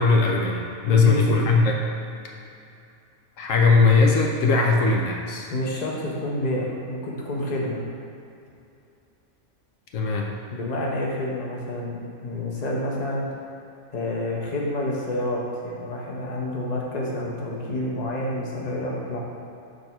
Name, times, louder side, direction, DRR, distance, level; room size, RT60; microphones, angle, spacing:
voice 1, 0.0-1.8 3.4-5.5 9.9-10.3, left 4 dB, 75° left, 0 dB, 1.0 m, -19 dB
voice 2, 0.8-1.5 5.5-7.8 10.5-13.2 13.9-19.2, left 1 dB, 35° left, -3 dB, 1.0 m, -28 dB
6.7 x 3.3 x 5.7 m, 2.6 s
omnidirectional pair, 1.4 m